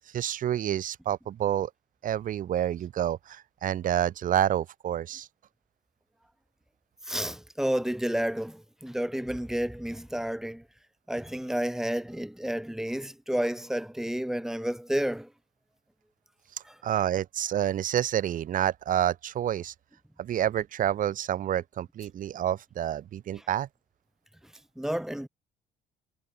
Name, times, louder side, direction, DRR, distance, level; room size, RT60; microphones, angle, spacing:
voice 1, 0.0-1.7 2.0-5.3 16.8-19.7 20.2-23.7, right 11 dB, 55° right, 1.0 m, -28 dB
voice 2, 7.1-10.6 11.1-15.3 16.6-16.8 24.8-25.3, equal, 5° right, 2.5 m, -31 dB
cardioid pair, 110°, 17 cm